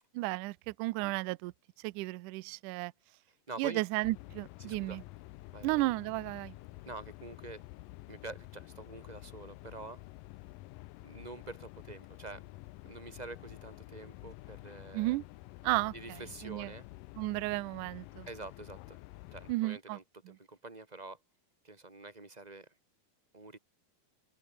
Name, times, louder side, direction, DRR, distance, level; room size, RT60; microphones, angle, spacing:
voice 1, 0.1-1.5 1.8-2.9 3.6-5.0 5.6-6.6 14.9-15.2 15.6-16.7 17.2-18.3 19.5-20.0, right 20 dB, 85° right, 1.8 m, -33 dB
voice 2, 3.5-3.8 4.6-5.0 5.5-5.8 6.8-7.6 8.1-10.0 11.0-12.5 12.9-15.2 15.9-16.9 18.3-19.0 19.3-21.2 21.6-22.7 23.3-23.6, right 3 dB, 15° right, 2.1 m, -46 dB
sound 1, 4.0-19.5, left 19 dB, 75° left, 2.2 m, -50 dB
open air
omnidirectional pair, 4.3 m